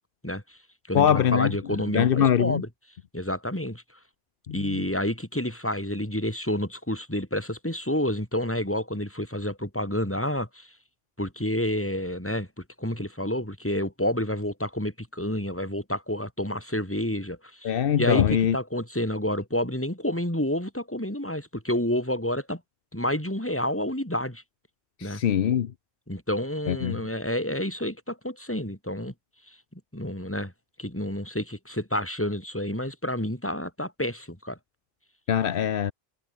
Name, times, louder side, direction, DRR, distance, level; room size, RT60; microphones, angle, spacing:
voice 1, 0.2-0.6 0.9-2.7 3.1-3.8 4.5-10.7 11.2-22.6 22.9-24.4 25.0-25.2 26.1-29.1 29.5-29.6 29.9-30.5 30.8-34.6, left 1 dB, 10° left, 4.3 m, -29 dB
voice 2, 0.9-1.6 1.9-2.6 4.5-4.8 17.6-18.6 25.0-25.7 26.7-27.0 35.3-35.9, left 9 dB, 65° left, 0.9 m, -23 dB
omnidirectional pair, 1.0 m